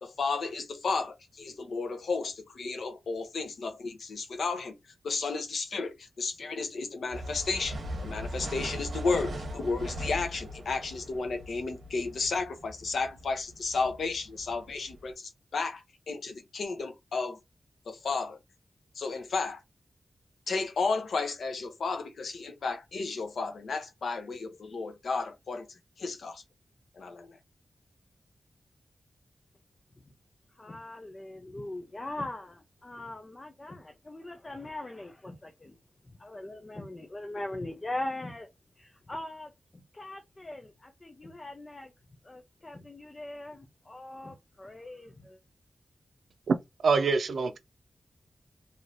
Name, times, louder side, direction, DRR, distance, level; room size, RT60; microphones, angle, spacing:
voice 1, 0.0-4.8 5.0-17.4 17.9-18.4 18.9-19.6 20.5-26.4 26.9-27.4, left 4 dB, 90° left, 0.7 m, -33 dB
sound 1, 7.1-15.1, equal, 60° right, 1.1 m, -40 dB
voice 2, 30.5-35.8 36.1-38.5 38.8-41.9 42.2-45.4, left 1 dB, 25° left, 0.4 m, -41 dB
voice 3, 46.8-47.6, right 4 dB, 90° right, 0.4 m, -24 dB
3.1 x 2.7 x 2.4 m
wide cardioid pair, 150°, 0 cm